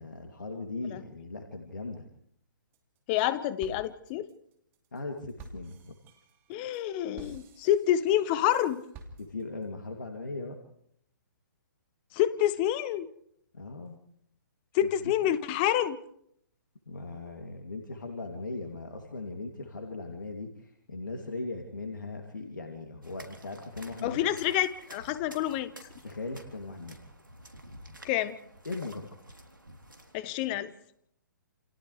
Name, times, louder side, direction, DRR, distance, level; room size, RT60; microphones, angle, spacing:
voice 1, 0.0-2.1 4.9-5.9 9.2-10.6 13.5-14.0 15.0-15.1 16.9-24.2 26.0-27.0 28.6-29.0, left 3 dB, 70° left, 3 dB, 2.7 m, -39 dB
sound 1, 2.7-3.3 3.6-9.7, right 3 dB, 20° right, 2.7 m, -51 dB
voice 2, 3.1-4.3 6.5-8.8 12.1-13.1 14.7-16.0 24.0-25.7 28.0-28.4 30.1-30.7, left 12 dB, 30° left, 14 dB, 1.2 m, -27 dB
sound 2, 23.0-30.2, right 1 dB, 80° right, 3.6 m, -50 dB
29.0 x 28.5 x 3.3 m, 0.73 s
figure-of-eight pair, 125°, 11 cm